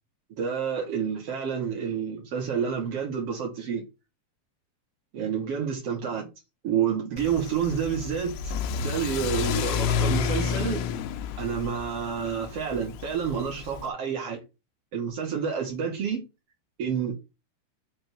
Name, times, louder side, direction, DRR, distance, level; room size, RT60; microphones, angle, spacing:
voice 1, 0.4-3.8 5.1-6.3 6.6-8.5 8.8-10.8 11.4-14.4 14.9-16.2 16.8-17.2, right 7 dB, 85° right, 1.3 m, -29 dB
Car / Accelerating revving vroom, 7.2-13.9, left 7 dB, 90° left, 3.3 m, -30 dB
7.6 x 3.5 x 6.3 m
omnidirectional pair, 5.7 m